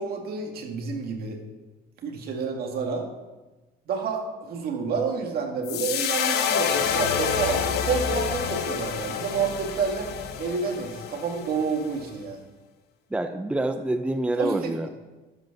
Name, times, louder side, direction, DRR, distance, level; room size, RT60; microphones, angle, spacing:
voice 1, 0.0-1.4 2.0-3.1 3.9-10.1 10.4-12.4 14.4-14.9, right 5 dB, 65° right, 2 dB, 2.0 m, -29 dB
sound 1, 5.6-12.0, left 7 dB, 75° left, 1.0 m, -28 dB
voice 2, 13.1-14.9, right 1 dB, 5° right, 8 dB, 0.5 m, -27 dB
12.0 x 6.3 x 6.0 m, 1.2 s
cardioid pair, 110°, 17 cm